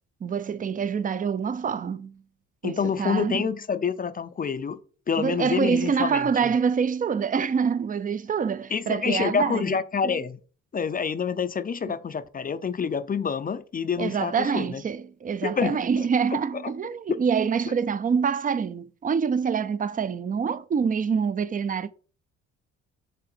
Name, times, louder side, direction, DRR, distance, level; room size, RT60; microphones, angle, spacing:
voice 1, 0.2-2.2 2.6-3.5 5.2-9.8 10.0-10.1 11.9-12.0 14.0-21.9, right 6 dB, 30° right, 0.4 m, -26 dB
voice 2, 2.6-4.8 5.1-6.5 8.7-10.4 10.7-14.8 15.4-16.1, left 6 dB, 30° left, 0.5 m, -27 dB
7.5 x 3.3 x 4.4 m
cardioid pair, 90°, 30 cm